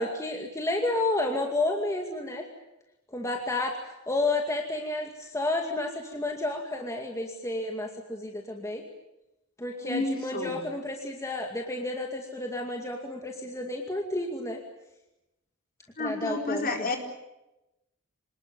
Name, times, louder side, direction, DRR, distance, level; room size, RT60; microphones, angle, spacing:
voice 1, 0.0-2.5 3.1-8.8 9.6-14.6 16.0-16.7, left 2 dB, 15° left, 2 dB, 2.3 m, -31 dB
voice 2, 9.7-10.6 16.0-17.0, left 3 dB, 45° left, 3 dB, 4.3 m, -31 dB
27.0 x 19.5 x 9.2 m, 0.94 s
head